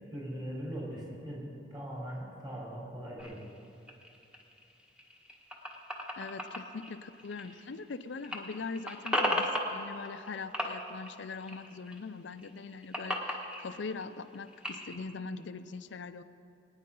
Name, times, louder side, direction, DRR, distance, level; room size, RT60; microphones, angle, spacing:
voice 1, 0.1-3.4, equal, 25° right, -4 dB, 3.8 m, -40 dB
sound 1, 3.2-7.9 8.2-10.3 10.5-12.0 12.3-15.0, left 1 dB, 5° right, 1.2 m, -36 dB
voice 2, 6.2-16.2, left 4 dB, 75° left, 12 dB, 0.5 m, -42 dB
21.5 x 9.7 x 3.8 m, 2.7 s
head